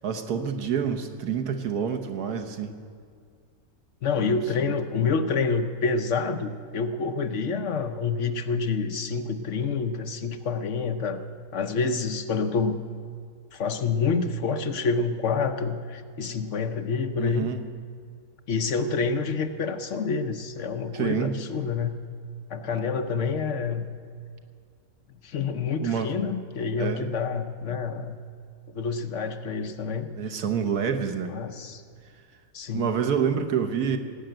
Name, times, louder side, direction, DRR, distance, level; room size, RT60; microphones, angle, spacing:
voice 1, 0.0-2.8 4.2-4.3 4.6-4.7 17.2-17.6 20.9-21.3 25.8-26.2 26.8-27.1 30.2-31.3 32.7-34.0, right 7 dB, 90° right, 6 dB, 1.6 m, -27 dB
voice 2, 4.0-11.2 11.5-12.8 13.5-17.5 18.5-22.0 22.5-23.8 25.2-28.2 28.7-30.1 31.3-31.8 32.5-32.9, left 5 dB, 60° left, 8 dB, 1.0 m, -27 dB
18.0 x 7.8 x 9.0 m, 2.1 s
omnidirectional pair, 1.6 m